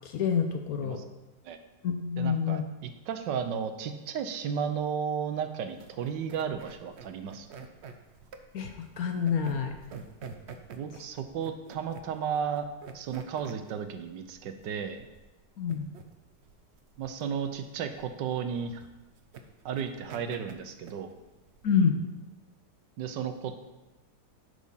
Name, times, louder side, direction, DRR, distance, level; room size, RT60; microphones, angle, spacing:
voice 1, 0.0-1.0 1.8-2.6 8.5-9.7 15.6-15.9 21.6-22.0, left 6 dB, 65° left, 5 dB, 1.1 m, -27 dB
voice 2, 2.2-7.5 10.8-12.7 12.9-15.1 17.0-18.9 19.6-21.1 23.0-23.6, right 7 dB, 75° right, 8 dB, 1.4 m, -34 dB
sound 1, 5.7-21.8, right 5 dB, 60° right, 0.7 m, -48 dB
10.5 x 4.8 x 5.5 m, 1.1 s
omnidirectional pair, 1.9 m